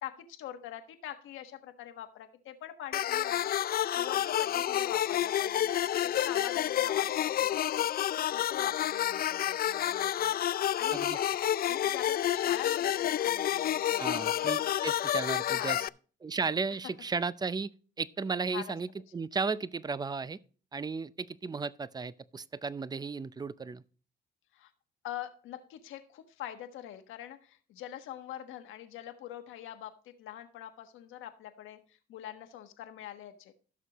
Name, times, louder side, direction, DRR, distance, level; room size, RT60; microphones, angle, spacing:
voice 1, 0.0-3.6 3.9-7.9 8.3-11.2 11.6-14.7 15.4-15.9 18.5-18.7 24.5-24.7 25.0-33.5, left 11 dB, 90° left, 1.4 m, -44 dB
sound 1, 2.9-15.9, left 11 dB, 50° left, 0.4 m, -29 dB
voice 2, 14.0-15.8 16.2-17.7 18.0-20.4 20.7-23.8, right 4 dB, 20° right, 0.6 m, -34 dB
15.5 x 6.5 x 3.0 m
cardioid pair, 90°, 20 cm